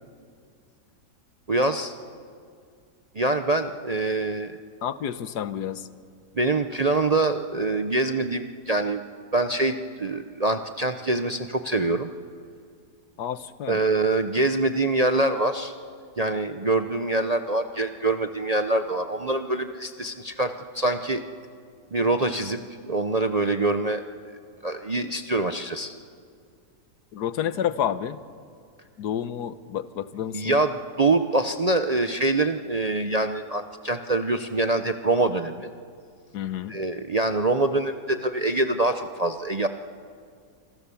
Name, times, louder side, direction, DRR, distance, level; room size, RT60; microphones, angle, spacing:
voice 1, 1.5-1.9 3.1-4.6 6.4-9.0 9.3-12.1 13.7-15.7 16.2-21.2 21.9-24.0 24.6-25.9 30.3-35.7 36.7-39.7, right 2 dB, 40° right, 7 dB, 0.5 m, -25 dB
voice 2, 4.8-5.9 13.2-13.8 27.1-28.2 29.0-30.6 36.3-36.7, left 9 dB, 90° left, 13 dB, 1.5 m, -29 dB
26.5 x 26.0 x 7.0 m, 2.2 s
omnidirectional pair, 1.7 m